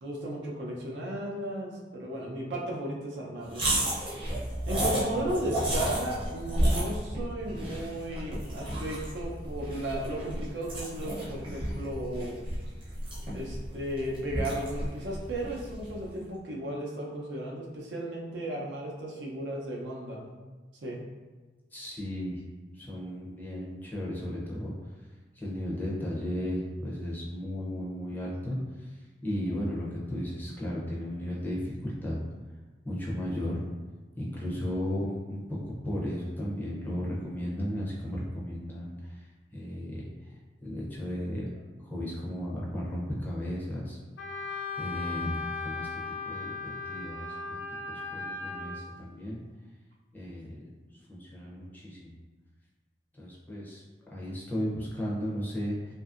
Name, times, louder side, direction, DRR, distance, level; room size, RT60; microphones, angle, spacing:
voice 1, 0.0-3.8 4.7-12.3 13.3-20.3 20.8-21.0, right 1 dB, 80° right, -2 dB, 0.6 m, -35 dB
sound 1, 3.5-16.0, right 1 dB, 30° right, 0.7 m, -32 dB
voice 2, 21.7-22.4 22.7-24.7 25.4-28.6 29.2-32.2 32.8-33.6 34.2-39.2 39.5-40.1 40.6-41.5 41.8-44.0 44.8-47.6 47.9-49.4 50.1-52.1 53.2-55.9, equal, 10° left, -5 dB, 0.5 m, -35 dB
Wind instrument woodwind instrument, 44.2-48.8, left 3 dB, 80° left, 0.5 m, -37 dB
2.7 x 2.5 x 2.4 m, 1.3 s
head